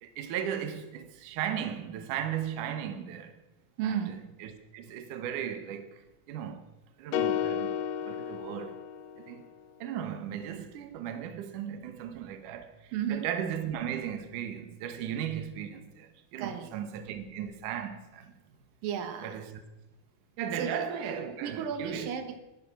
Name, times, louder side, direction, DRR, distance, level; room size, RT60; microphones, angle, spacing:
voice 1, 0.0-3.4 3.8-5.9 6.3-6.6 7.0-7.8 8.0-8.8 9.2-9.4 9.8-18.3 19.2-19.6 20.4-22.1, right 9 dB, 70° right, 2.6 m, -36 dB
voice 2, 3.8-4.2 12.9-13.3 16.4-16.7 18.8-19.4 20.6-20.8 21.4-22.4, right 8 dB, 90° right, 3.0 m, -34 dB
sound 1, 7.1-9.4, left 9 dB, 80° left, 1.5 m, -32 dB
20.0 x 10.5 x 6.0 m
omnidirectional pair, 3.9 m